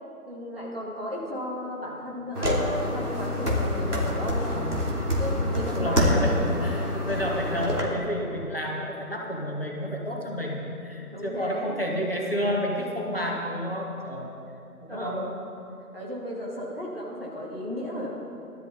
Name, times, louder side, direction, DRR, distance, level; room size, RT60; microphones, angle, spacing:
voice 1, 0.3-4.7 5.2-6.3 6.8-7.0 11.1-11.8 14.9-15.3 15.9-18.1, left 1 dB, 40° right, -5 dB, 2.5 m, -34 dB
sound 1, 2.3-7.8, left 1 dB, 90° right, 3.0 m, -26 dB
voice 2, 5.7-14.3 14.8-15.4, equal, 40° left, -1 dB, 1.4 m, -30 dB
16.0 x 12.5 x 4.0 m, 2.8 s
figure-of-eight pair, 175°, 45 cm